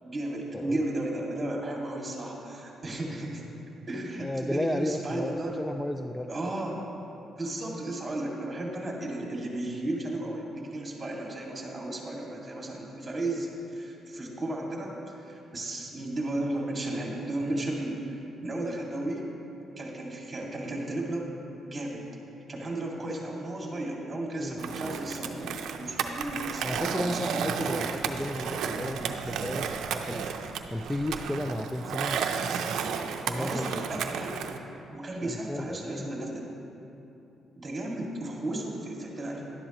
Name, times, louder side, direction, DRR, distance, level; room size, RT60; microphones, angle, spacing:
voice 1, 0.0-3.4 3.9-5.5 6.3-6.8 7.4-14.9 15.3-19.3 19.8-21.3 21.7-22.0 22.5-27.8 33.3-34.5 34.9-36.5 37.6-39.4, right 1 dB, 25° right, -1 dB, 2.1 m, -34 dB
voice 2, 0.5-0.9 4.2-6.5 24.4-24.6 26.6-30.2 30.7-32.4 33.2-33.7 35.2-36.2, left 1 dB, 5° left, 6 dB, 0.4 m, -33 dB
Skateboard, 24.6-34.6, right 6 dB, 75° right, 0.5 m, -33 dB
11.5 x 11.0 x 3.0 m, 2.8 s
cardioid pair, 90°, 0 cm